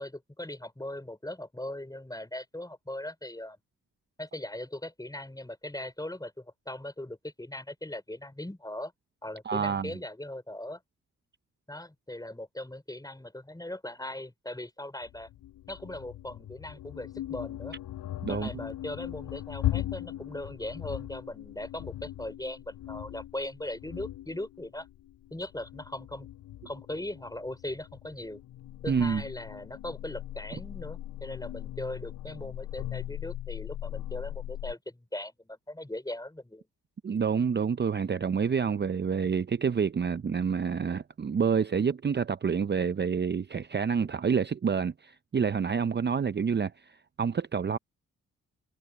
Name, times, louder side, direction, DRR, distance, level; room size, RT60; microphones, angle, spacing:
voice 1, 0.0-3.6 4.2-8.9 9.2-10.8 11.7-15.3 15.7-17.8 18.3-24.9 25.3-26.3 26.6-28.4 28.8-36.6, left 1 dB, 10° left, 5.6 m, -39 dB
voice 2, 9.5-9.9 18.2-18.6 28.9-29.2 37.0-47.8, right 6 dB, 35° right, 0.7 m, -28 dB
sound 1, 15.0-34.7, left 13 dB, 80° left, 6.2 m, -39 dB
supercardioid pair, 50°, 32 cm